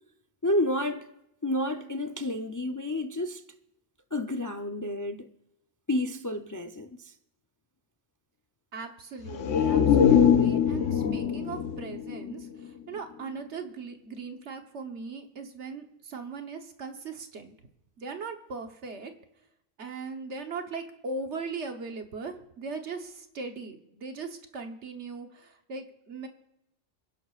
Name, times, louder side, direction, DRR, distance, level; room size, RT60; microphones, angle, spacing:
voice 1, 0.4-1.1 1.4-3.4 4.1-5.3 5.9-7.1, left 1 dB, 25° left, 0.4 m, -30 dB
voice 2, 8.7-17.5 18.0-19.1 19.8-26.3, right 4 dB, 70° right, 1.4 m, -39 dB
sound 1, 9.2-13.0 13.3-13.4, left 8 dB, 85° left, 1.1 m, -23 dB
27.5 x 11.0 x 2.5 m
omnidirectional pair, 1.2 m